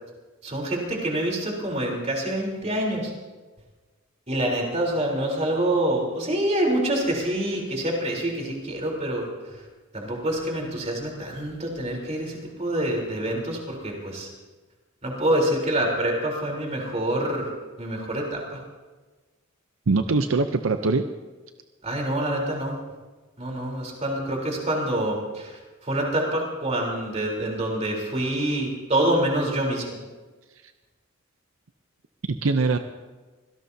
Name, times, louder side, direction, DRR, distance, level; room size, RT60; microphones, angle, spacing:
voice 1, 0.4-3.1 4.3-9.6 9.9-14.3 15.0-17.5 17.8-18.6 21.8-22.8 23.4-30.0, right 1 dB, 30° right, -1 dB, 3.7 m, -26 dB
voice 2, 19.9-21.0 32.3-32.8, right 3 dB, 75° right, 8 dB, 0.6 m, -22 dB
25.0 x 17.5 x 2.8 m, 1.3 s
head